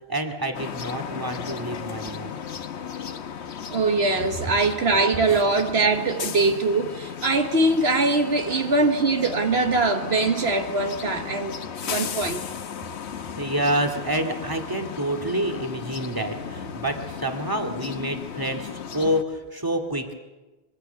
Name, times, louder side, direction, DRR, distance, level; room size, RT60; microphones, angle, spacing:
voice 1, 0.1-2.3 5.3-5.4 8.5-8.7 12.1-12.3 13.4-20.1, right 1 dB, 20° right, 3 dB, 2.3 m, -28 dB
sound 1, 0.5-19.2, left 7 dB, 85° left, 1.3 m, -35 dB
voice 2, 3.7-11.5 11.8-12.4, right 3 dB, 70° right, 5 dB, 1.5 m, -22 dB
25.5 x 23.0 x 6.9 m, 1.2 s
omnidirectional pair, 1.1 m